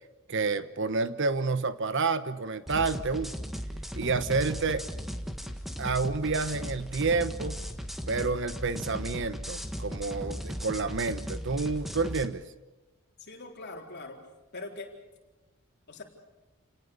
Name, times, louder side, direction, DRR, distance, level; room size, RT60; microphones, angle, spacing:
voice 1, 0.3-3.3 3.9-4.9 5.8-7.6 8.1-12.4, right 4 dB, 55° right, 12 dB, 1.1 m, -29 dB
sound 1, 2.7-12.2, equal, ahead, 1.6 m, -37 dB
voice 2, 13.2-14.2 14.5-14.9 15.9-16.0, left 2 dB, 50° left, 1 dB, 4.1 m, -42 dB
29.5 x 18.5 x 6.8 m, 1.1 s
head